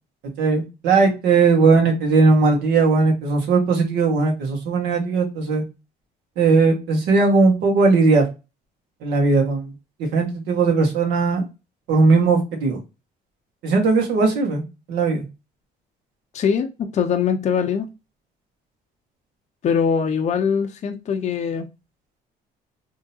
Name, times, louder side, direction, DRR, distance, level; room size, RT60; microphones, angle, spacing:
voice 1, 0.4-5.6 6.4-8.3 9.0-9.7 10.1-11.4 11.9-12.8 13.6-14.6 14.9-15.2, right 4 dB, 80° right, 1.4 m, -18 dB
voice 2, 16.3-17.9 19.6-21.7, left 6 dB, 40° left, 0.5 m, -22 dB
3.7 x 2.8 x 2.7 m
cardioid pair, 110°, 17 cm